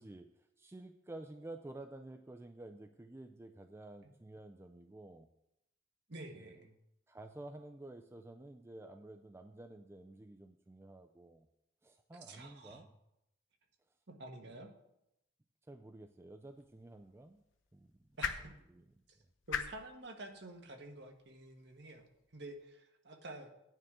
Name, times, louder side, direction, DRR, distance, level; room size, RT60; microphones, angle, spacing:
voice 1, 0.0-5.3 6.3-6.7 7.1-11.5 11.8-12.9 14.4-14.6 15.7-17.4 17.7-17.9 18.7-18.8, right 2 dB, 10° right, 7 dB, 0.3 m, -51 dB
voice 2, 6.1-6.8 12.2-12.8 14.1-14.7 18.2-18.5 19.5-23.5, right 2 dB, 55° right, 4 dB, 1.2 m, -50 dB
sound 1, 16.4-22.6, left 6 dB, 70° left, 0.7 m, -46 dB
11.0 x 9.2 x 3.6 m, 0.84 s
head